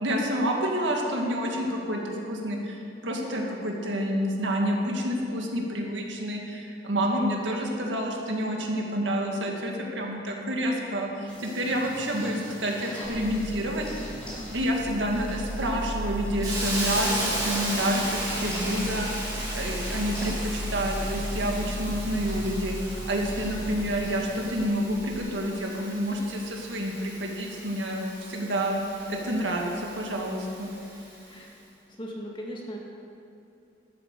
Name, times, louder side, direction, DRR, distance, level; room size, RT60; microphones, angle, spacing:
voice 1, 0.0-13.9 14.5-19.3 19.5-28.8 29.1-29.7 30.0-30.7, equal, 85° right, 0 dB, 1.9 m, -29 dB
sound 1, 11.3-24.7, equal, 5° left, 3.6 m, -44 dB
sound 2, 13.0-25.2, equal, 45° right, 1.9 m, -36 dB
voice 2, 15.1-15.9 31.3-31.5 31.9-32.8, equal, 25° left, -2 dB, 1.9 m, -39 dB
Hiss, 16.4-31.2, right 1 dB, 20° right, 3.6 m, -36 dB
12.0 x 9.0 x 6.7 m, 2.8 s
head